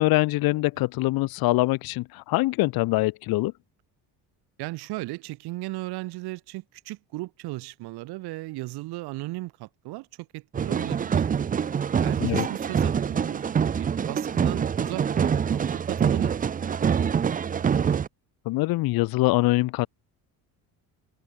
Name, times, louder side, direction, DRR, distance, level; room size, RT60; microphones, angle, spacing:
voice 1, 0.0-3.5 12.2-12.5 18.4-19.9, left 20 dB, 65° left, 1.3 m, -23 dB
voice 2, 4.6-11.2 12.0-16.4, right 20 dB, 80° right, 4.3 m, -36 dB
sound 1, 10.5-18.1, right 7 dB, 20° right, 0.8 m, -25 dB
cardioid pair, 175°, 38 cm